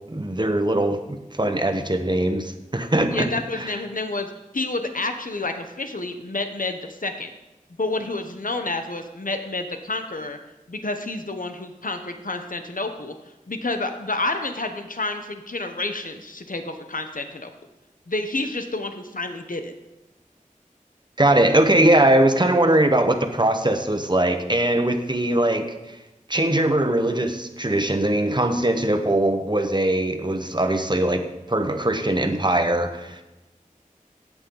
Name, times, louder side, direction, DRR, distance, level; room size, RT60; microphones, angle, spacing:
voice 1, 0.1-3.3 3.5-3.8 21.2-25.7 26.3-33.2, right 1 dB, 30° right, 6 dB, 1.2 m, -21 dB
voice 2, 3.1-4.3 4.5-7.3 7.8-10.4 10.7-13.1 13.5-17.5 18.1-19.7, left 2 dB, 75° left, 6 dB, 1.0 m, -29 dB
15.5 x 8.9 x 3.9 m, 1.0 s
wide cardioid pair, 40°, 14 cm